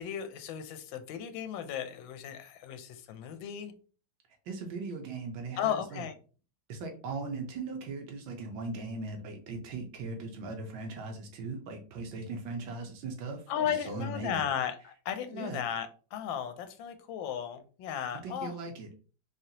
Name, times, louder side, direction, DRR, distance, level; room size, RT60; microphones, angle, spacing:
voice 1, 0.0-3.7 5.6-6.1 13.5-18.5, left 9 dB, 85° left, 9 dB, 1.4 m, -35 dB
voice 2, 4.5-6.0 6.7-14.4 15.3-15.6 18.2-18.9, right 3 dB, 90° right, 3 dB, 1.6 m, -39 dB
4.2 x 3.3 x 2.8 m, 0.38 s
omnidirectional pair, 2.0 m